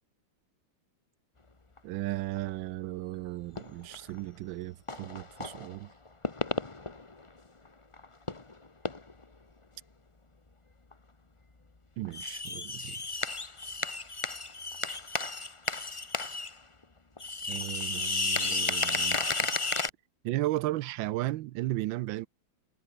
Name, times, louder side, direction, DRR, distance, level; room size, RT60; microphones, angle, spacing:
sound 1, 1.8-1.9 2.4-2.5 3.6-4.2 4.9-5.8 6.1-7.3 7.7-7.8 7.9-8.5 8.9-9.2 10.9-11.0 12.0-16.5 16.8-16.9 17.2-19.9, left 3 dB, 20° left, 1.1 m, -33 dB
voice 1, 1.8-5.9 12.0-13.0 17.5-19.2 20.2-22.3, right 16 dB, 80° right, 1.3 m, -35 dB
omnidirectional pair, 2.1 m